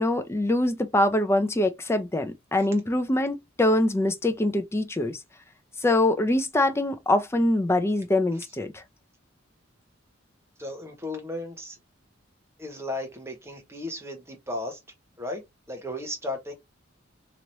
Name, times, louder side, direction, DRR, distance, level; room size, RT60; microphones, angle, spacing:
voice 1, 0.0-5.2 5.8-8.8, left 1 dB, 15° left, 0.4 m, -24 dB
voice 2, 10.6-11.8 12.6-14.8 15.2-15.4 15.7-16.5, left 1 dB, 15° right, 1.0 m, -35 dB
3.0 x 2.9 x 2.6 m
head